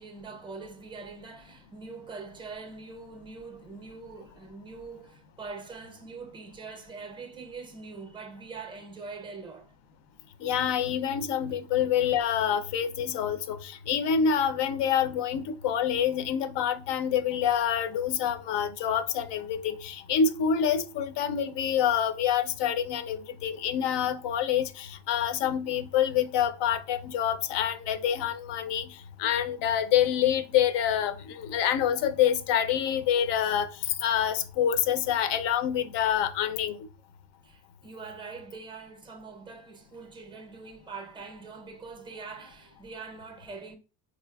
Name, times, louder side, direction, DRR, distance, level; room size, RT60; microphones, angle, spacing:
voice 1, 0.0-9.7 37.4-43.8, right 4 dB, 10° right, 0.5 m, -43 dB
voice 2, 10.4-36.9, left 9 dB, 60° left, 0.5 m, -27 dB
3.8 x 2.4 x 2.2 m
cardioid pair, 110°, 48 cm